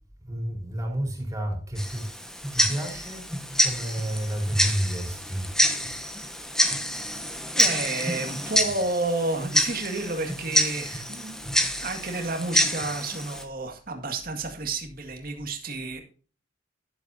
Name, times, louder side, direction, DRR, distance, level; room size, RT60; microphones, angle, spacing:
voice 1, 0.2-2.1 2.5-3.2 3.6-5.5, right 1 dB, 15° right, 0 dB, 4.1 m, -30 dB
Tick-tock, 1.8-13.4, equal, 5° left, 1.3 m, -27 dB
voice 2, 7.6-11.5 11.8-16.0, right 2 dB, 50° right, 4 dB, 2.1 m, -31 dB
12.0 x 11.5 x 2.7 m, 0.38 s
head